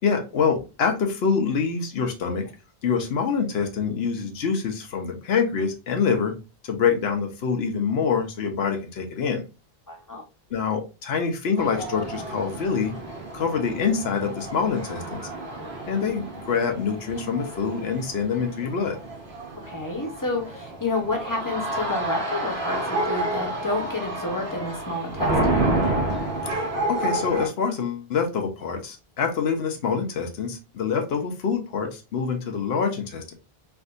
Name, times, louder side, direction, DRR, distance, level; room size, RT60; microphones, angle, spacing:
voice 1, 0.0-2.5 2.8-6.3 6.6-9.4 10.5-12.9 13.3-15.3 15.9-19.0 26.4-33.3, left 6 dB, 85° left, 4 dB, 1.0 m, -25 dB
voice 2, 9.9-10.2 19.6-25.6, left 2 dB, 20° left, 2 dB, 0.8 m, -30 dB
sound 1, 11.6-27.5, right 1 dB, 90° right, 1.4 m, -29 dB
3.4 x 2.6 x 2.5 m, 0.29 s
omnidirectional pair, 1.0 m